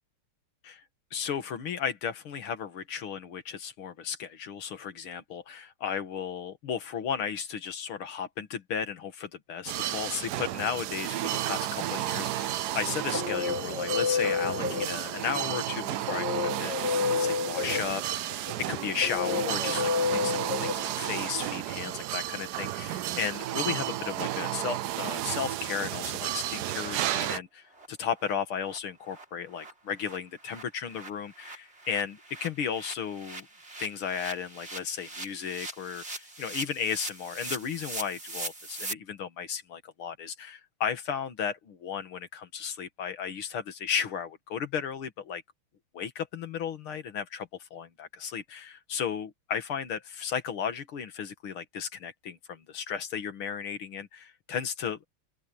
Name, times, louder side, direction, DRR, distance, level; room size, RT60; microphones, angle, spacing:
voice 1, 1.1-33.5 33.8-45.4 45.9-55.0, left 7 dB, 75° left, 2.5 m, -34 dB
sound 1, 9.7-27.4, right 13 dB, 75° right, 0.9 m, -32 dB
sound 2, 12.8-21.5, left 5 dB, 50° left, 2.3 m, -31 dB
sound 3, 27.7-27.9 28.2-28.3 28.6-28.8 29.0-38.9, right 2 dB, 30° right, 3.8 m, -41 dB
open air
omnidirectional pair, 2.4 m